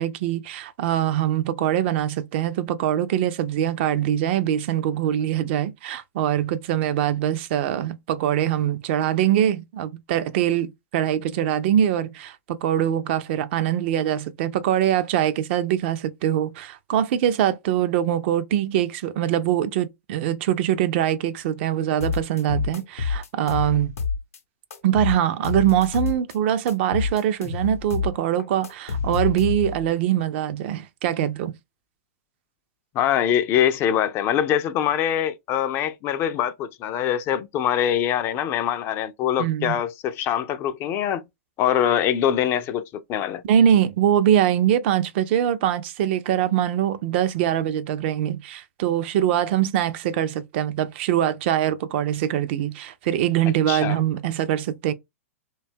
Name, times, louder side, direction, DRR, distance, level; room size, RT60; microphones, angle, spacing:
voice 1, 0.0-23.9 24.8-31.5 39.4-39.7 43.5-54.9, right 10 dB, 50° right, 0.4 m, -23 dB
sound 1, 22.0-24.4 24.7-26.4 26.7-29.9, left 5 dB, 80° left, 0.6 m, -28 dB
voice 2, 32.9-41.2 41.6-43.4 53.7-54.0, left 10 dB, 30° left, 0.3 m, -23 dB
2.7 x 2.2 x 2.5 m
hypercardioid pair, 115°, 8 cm